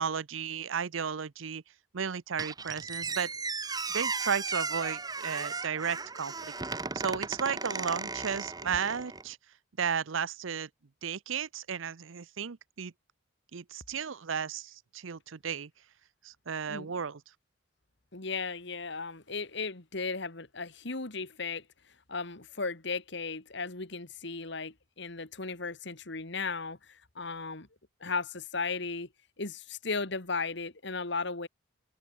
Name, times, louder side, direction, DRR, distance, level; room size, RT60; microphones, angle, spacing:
voice 1, 0.0-1.6 1.9-3.3 3.9-6.5 6.9-9.4 9.8-10.7 11.0-12.9 13.5-15.7 16.2-17.2, right 6 dB, 75° right, 0.7 m, -34 dB
Squeak, 2.4-9.3, right 4 dB, 20° right, 1.3 m, -36 dB
voice 2, 18.1-21.6 22.1-27.7 28.0-29.1 29.4-31.5, left 4 dB, 60° left, 2.1 m, -36 dB
open air
head